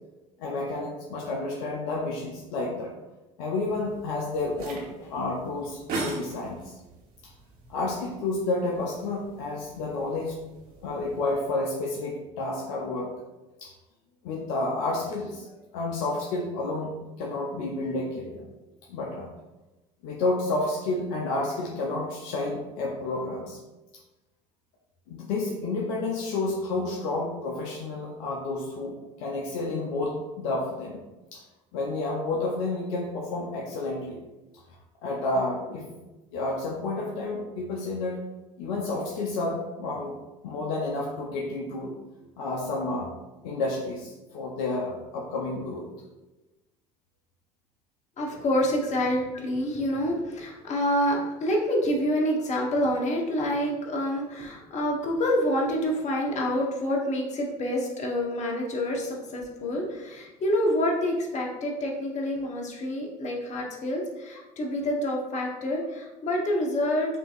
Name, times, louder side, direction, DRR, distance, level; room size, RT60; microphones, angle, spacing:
voice 1, 0.4-2.9 3.4-6.7 7.2-7.3 7.7-10.4 10.8-13.1 13.6-13.7 14.2-18.5 18.9-19.3 20.0-23.6 25.1-31.0 31.3-31.4 31.7-34.2 35.0-35.9 36.3-38.2 38.6-40.2 40.4-41.9 42.4-43.1 43.4-45.9, left 2 dB, 70° left, -2 dB, 0.7 m, -30 dB
sound 1, 3.6-11.4, right 2 dB, 55° right, 1.2 m, -41 dB
voice 2, 48.2-67.2, equal, 40° left, -1 dB, 1.1 m, -27 dB
6.1 x 2.8 x 2.5 m, 1.1 s
hypercardioid pair, 70°, 18 cm